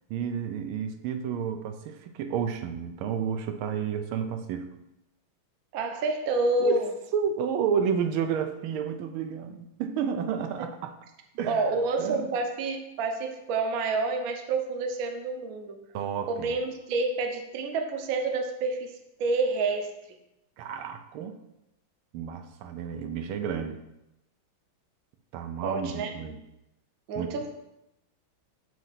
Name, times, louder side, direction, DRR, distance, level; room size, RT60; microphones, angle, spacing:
voice 1, 0.1-4.7 6.6-6.8 7.1-10.9 11.4-11.7 12.0-12.3 15.9-16.5 20.6-21.4 22.1-23.8 25.3-26.4 27.2-27.3, right 7 dB, 90° right, 7 dB, 1.5 m, -31 dB
voice 2, 5.7-6.9 11.4-15.8 16.3-19.9 25.6-26.1 27.1-27.5, right 3 dB, 60° right, 4 dB, 1.0 m, -28 dB
7.7 x 2.7 x 5.9 m, 0.90 s
omnidirectional pair, 2.3 m